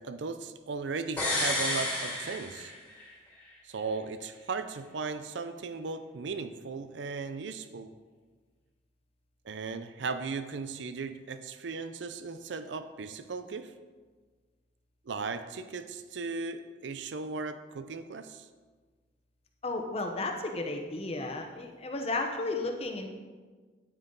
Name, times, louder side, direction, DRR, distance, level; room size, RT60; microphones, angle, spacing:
voice 1, 0.0-2.7 3.6-7.9 9.4-13.7 15.1-18.5, right 4 dB, 75° right, 10 dB, 0.5 m, -37 dB
sound 1, 1.2-3.1 3.4-3.5, left 1 dB, 10° left, 2.4 m, -31 dB
voice 2, 19.6-23.1, left 2 dB, 30° left, 3 dB, 0.9 m, -33 dB
9.3 x 9.0 x 3.9 m, 1.4 s
head